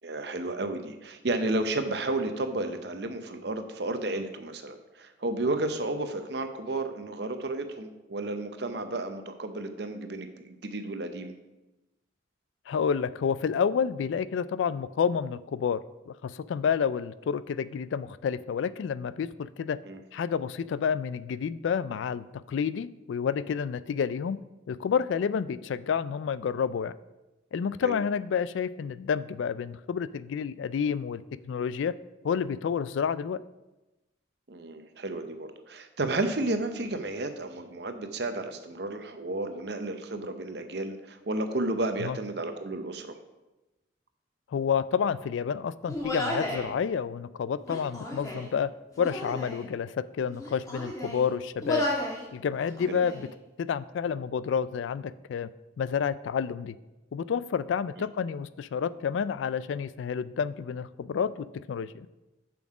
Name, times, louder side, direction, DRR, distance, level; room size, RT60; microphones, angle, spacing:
voice 1, 0.0-11.3 19.8-20.0 27.8-28.0 34.5-43.2 52.9-53.0, right 2 dB, 60° right, 7 dB, 0.7 m, -32 dB
voice 2, 12.7-15.8 16.1-19.8 20.1-24.4 24.7-26.9 27.5-31.9 32.2-33.4 42.0-42.2 44.5-48.7 49.0-51.9 52.3-53.3 53.6-55.5 55.8-56.8 57.1-62.1, left 7 dB, 80° left, 17 dB, 0.3 m, -29 dB
Human voice, 45.9-46.7 47.6-48.5 49.0-49.6 50.3-51.2 51.6-52.2 52.6-53.3, left 1 dB, 20° left, 1.3 m, -33 dB
7.2 x 6.1 x 4.9 m, 1.0 s
head